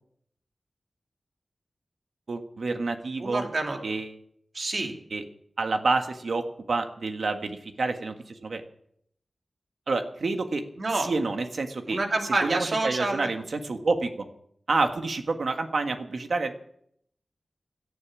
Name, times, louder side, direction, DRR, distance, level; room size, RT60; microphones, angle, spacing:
voice 1, 2.3-3.4 3.8-4.1 5.1-5.2 5.6-8.6 9.9-10.6 11.0-12.0 12.4-14.2 14.7-16.5, right 3 dB, 75° right, 6 dB, 1.6 m, -28 dB
voice 2, 3.2-3.8 4.5-5.0 10.8-11.1 11.9-13.3, right 2 dB, 55° right, 3 dB, 2.7 m, -28 dB
17.0 x 11.0 x 6.2 m, 0.70 s
wide cardioid pair, 105°, 0 cm